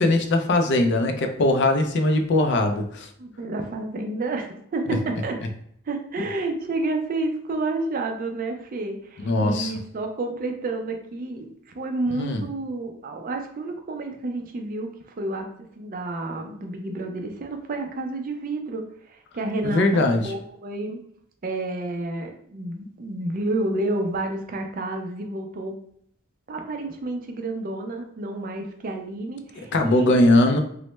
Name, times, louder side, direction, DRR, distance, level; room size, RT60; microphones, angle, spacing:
voice 1, 0.0-3.1 4.9-5.0 9.2-9.7 12.1-12.4 19.6-20.3 29.7-30.6, left 2 dB, 55° left, 5 dB, 0.4 m, -20 dB
voice 2, 3.2-5.4 5.9-14.9 15.2-15.4 15.8-21.0 21.4-25.8 26.5-30.2, right 2 dB, 40° right, 4 dB, 0.4 m, -30 dB
3.1 x 2.1 x 3.0 m, 0.67 s
head